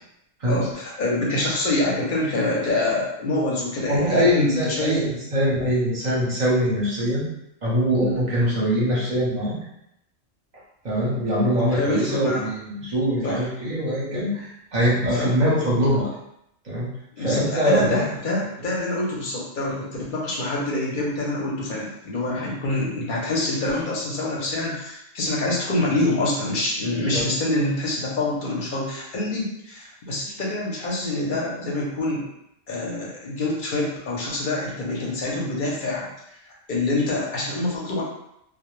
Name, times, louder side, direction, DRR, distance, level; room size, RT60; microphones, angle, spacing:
voice 1, 0.4-5.1 11.7-12.5 13.2-13.4 15.2-15.3 17.2-32.2 32.7-36.4 36.7-38.0, left 2 dB, 50° left, -4 dB, 0.6 m, -26 dB
voice 2, 3.9-7.3 7.6-9.6 10.8-16.1 16.6-16.9 17.2-18.1 27.0-27.3, equal, 40° right, -6 dB, 0.7 m, -23 dB
2.1 x 2.1 x 3.0 m, 0.79 s
omnidirectional pair, 1.3 m